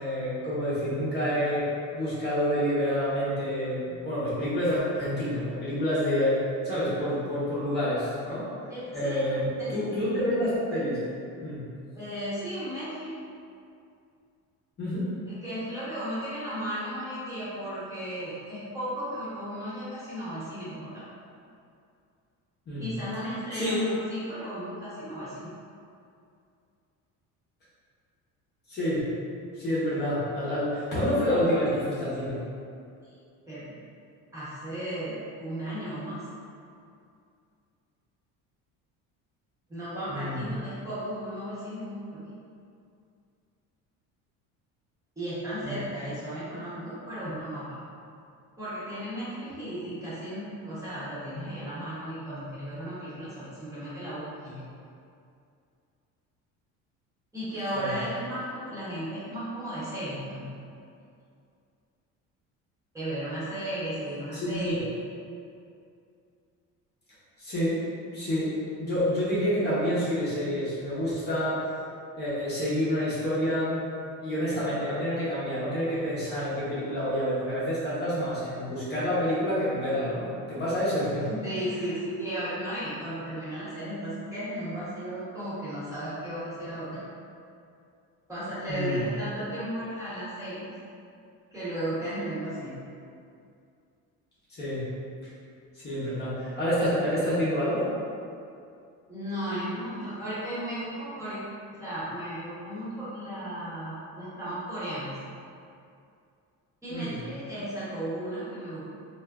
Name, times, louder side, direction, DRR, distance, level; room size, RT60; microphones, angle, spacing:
voice 1, 0.0-1.7 1.9-6.4 6.6-8.5 8.9-11.0 11.4-11.6 14.8-15.1 22.7-22.9 23.5-23.8 28.7-29.0 29.5-32.4 40.1-40.5 45.6-45.9 57.7-57.9 64.3-64.7 67.4-67.8 68.1-71.6 72.2-73.8 74.2-81.4 88.7-89.0 94.6-94.8 95.7-97.9 106.9-107.2, equal, 30° left, -10 dB, 0.8 m, -28 dB
voice 2, 8.7-9.7 11.9-13.1 15.3-21.0 22.8-25.6 33.5-33.8 34.3-36.2 39.7-42.2 45.2-47.8 48.6-54.6 57.3-60.5 62.9-64.9 81.4-87.0 88.3-90.7 91.5-92.8 99.1-101.4 101.8-105.2 106.8-108.9, right 1 dB, 10° right, -13 dB, 0.9 m, -35 dB
3.3 x 2.5 x 2.3 m, 2.4 s
cardioid pair, 155°, 32 cm